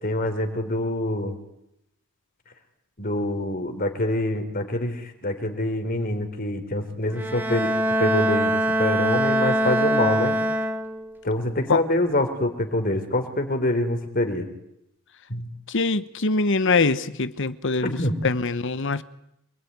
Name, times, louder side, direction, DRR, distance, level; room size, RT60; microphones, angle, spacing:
voice 1, 0.0-1.4 3.0-7.7 8.0-10.4 11.2-14.5 15.3-15.5 17.8-18.2, left 1 dB, 40° left, 3.8 m, -25 dB
Bowed string instrument, 7.1-11.2, right 1 dB, 10° right, 2.2 m, -23 dB
voice 2, 15.7-18.0 18.2-19.0, left 3 dB, 60° left, 1.1 m, -23 dB
27.0 x 21.0 x 9.6 m
head